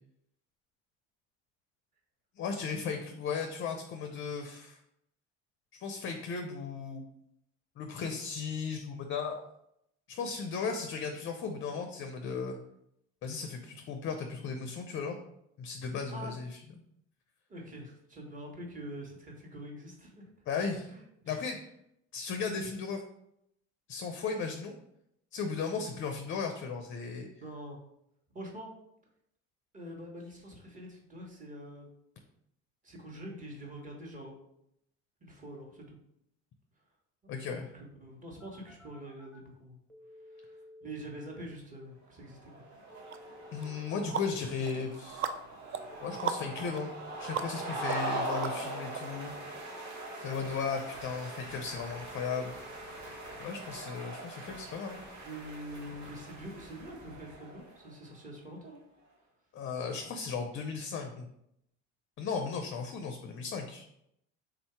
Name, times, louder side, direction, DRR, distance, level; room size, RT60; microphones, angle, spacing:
voice 1, 2.4-4.8 5.8-7.0 7.8-9.5 10.1-12.6 13.2-15.1 15.6-16.5 20.5-20.9 21.3-21.6 22.1-23.0 23.9-24.7 25.3-27.3 37.3-37.7 43.5-45.3 46.0-46.9 47.2-49.3 50.2-52.5 53.4-55.0 59.5-61.3 62.2-63.8, left 5 dB, 40° left, 5 dB, 0.5 m, -36 dB
voice 2, 17.5-20.4 20.8-21.4 27.4-27.8 28.3-28.7 29.7-31.9 32.8-34.3 35.2-36.0 37.2-39.8 40.3-42.5 55.2-58.8, right 1 dB, 25° right, -1 dB, 1.3 m, -45 dB
Telephone, 38.4-39.4 39.9-41.4 42.9-44.4 45.9-47.4 48.9-50.4 51.9-53.4, left 1 dB, ahead, 0.9 m, -53 dB
sound 1, 42.3-57.9, right 2 dB, 65° right, 1.5 m, -41 dB
sound 2, 43.1-43.2 43.6-49.0, right 8 dB, 40° right, 0.4 m, -39 dB
3.9 x 2.7 x 4.4 m, 0.76 s
supercardioid pair, 105°, 33 cm